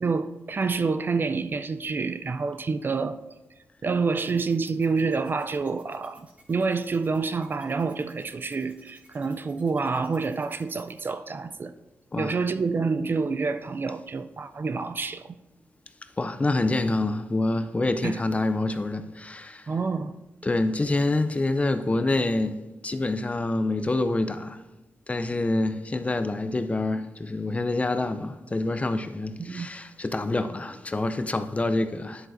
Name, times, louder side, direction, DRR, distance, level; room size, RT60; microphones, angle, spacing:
voice 1, 0.0-3.2 3.8-11.7 12.2-15.4 18.0-18.2 19.7-20.1 29.4-29.7, right 4 dB, 40° right, 0.4 m, -28 dB
sound 1, 4.2-11.1, right 1 dB, 25° right, 1.8 m, -57 dB
voice 2, 16.2-19.7 20.4-24.6 25.1-32.3, left 2 dB, 25° left, 0.5 m, -27 dB
10.0 x 7.6 x 2.6 m
cardioid pair, 85°, 5 cm